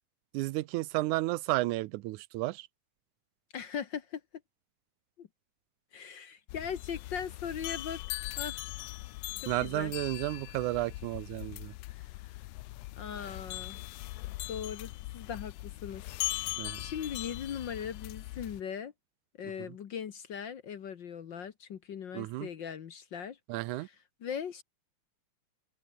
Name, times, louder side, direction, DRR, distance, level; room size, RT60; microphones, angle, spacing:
voice 1, 0.3-2.7 9.5-11.7 16.6-16.8 22.1-22.5 23.5-23.9, right 19 dB, 90° right, 2.1 m, -32 dB
voice 2, 3.5-4.2 5.2-5.3 5.9-8.6 9.6-9.9 11.9-12.1 13.0-13.8 14.5-16.0 16.5-18.9 19.4-23.4 23.7-24.6, left 8 dB, 55° left, 1.3 m, -39 dB
sound 1, 6.5-18.6, left 19 dB, 90° left, 1.4 m, -40 dB
open air
omnidirectional pair, 3.5 m